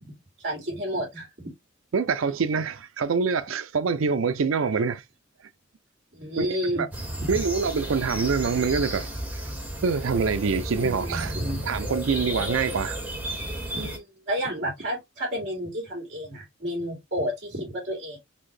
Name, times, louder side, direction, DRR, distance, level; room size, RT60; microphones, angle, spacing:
voice 1, 0.4-1.3 6.1-6.8 7.2-7.3 10.8-11.6 13.7-18.2, equal, 55° right, 2.3 m, -31 dB
voice 2, 1.9-5.0 6.4-6.5 6.8-6.9 7.3-9.4 9.8-11.3 11.6-13.0, right 5 dB, 80° right, 0.5 m, -25 dB
sound 1, 6.9-14.0, right 1 dB, 10° right, 1.6 m, -33 dB
4.2 x 2.6 x 3.2 m
head